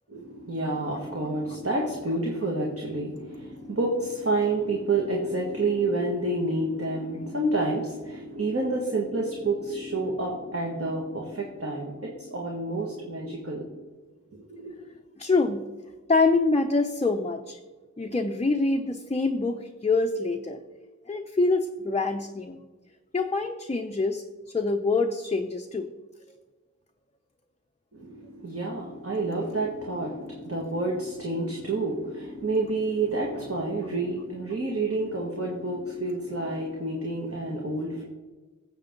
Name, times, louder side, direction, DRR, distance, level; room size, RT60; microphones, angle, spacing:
voice 1, 0.1-13.8 14.3-14.8 27.9-38.0, right 2 dB, 45° right, -1 dB, 1.8 m, -29 dB
voice 2, 15.2-15.6 16.1-17.6 18.0-20.6 21.1-22.6 23.1-25.9, left 3 dB, 20° left, 4 dB, 0.6 m, -25 dB
16.0 x 7.5 x 3.8 m, 1.3 s
wide cardioid pair, 65°, 32 cm